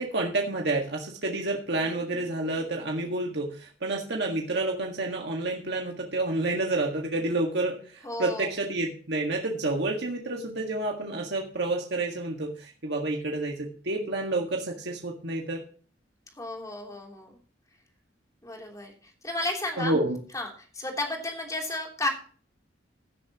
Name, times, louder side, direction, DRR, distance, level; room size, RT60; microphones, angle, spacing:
voice 1, 0.0-15.6 19.8-20.2, right 2 dB, 65° right, 1 dB, 1.8 m, -29 dB
voice 2, 8.0-8.5 16.4-17.4 18.4-19.9 20.3-22.1, left 2 dB, 20° left, 1 dB, 3.2 m, -33 dB
17.0 x 10.5 x 3.0 m, 0.42 s
head